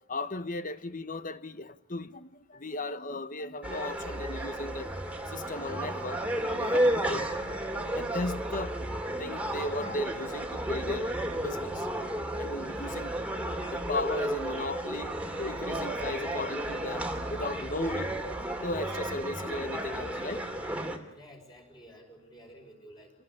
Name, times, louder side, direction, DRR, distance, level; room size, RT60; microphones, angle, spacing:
voice 1, 0.1-4.9 5.3-7.6 7.9-8.9 9.2-11.1 11.4-11.9 12.4-13.1 13.7-15.1 15.4-18.1 18.6-20.4, left 2 dB, 40° left, 1.2 m, -36 dB
sound 1, 3.6-21.0, right 1 dB, 5° right, 2.5 m, -33 dB
voice 2, 21.2-23.1, equal, 20° left, 5.7 m, -52 dB
27.0 x 19.0 x 9.9 m
head